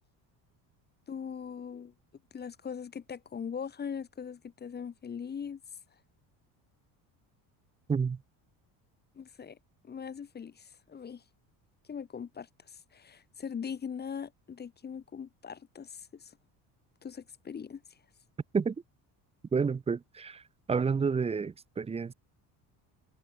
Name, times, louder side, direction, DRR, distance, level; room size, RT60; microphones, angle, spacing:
voice 1, 1.1-1.9 2.3-5.6 9.2-9.6 9.8-11.2 11.9-16.3 17.0-17.8, left 7 dB, 25° left, 0.8 m, -41 dB
voice 2, 19.5-20.4 20.7-22.1, right 5 dB, 15° right, 0.4 m, -29 dB
cardioid pair, 110°, 41 cm